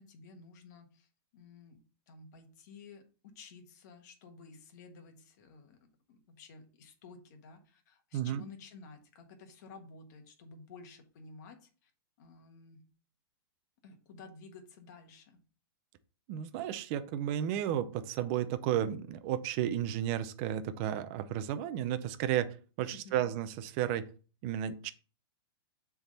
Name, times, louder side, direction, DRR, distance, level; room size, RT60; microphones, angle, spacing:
voice 1, 0.0-3.0 3.3-5.8 6.1-11.9 12.2-12.9 13.8-15.4 22.9-23.3, left 4 dB, 45° left, 5 dB, 1.4 m, -53 dB
voice 2, 8.1-8.4 16.3-24.1 24.4-24.9, right 11 dB, 30° right, 11 dB, 0.5 m, -33 dB
7.1 x 3.6 x 4.0 m, 0.37 s
supercardioid pair, 165°, 13 cm